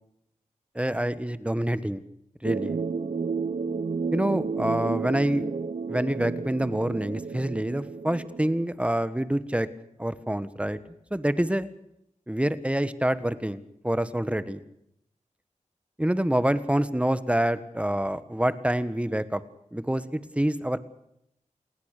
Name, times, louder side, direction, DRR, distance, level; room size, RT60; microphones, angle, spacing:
voice 1, 0.7-2.0 2.4-2.8 4.1-5.4 5.9-9.7 10.0-10.8 11.1-11.7 12.3-14.6 16.0-19.4 19.7-20.8, right 1 dB, 10° right, 13 dB, 1.4 m, -26 dB
sound 1, 2.4-8.7, right 5 dB, 70° right, 1.0 m, -31 dB
28.0 x 20.0 x 6.7 m, 0.77 s
wide cardioid pair, 100°, 13 cm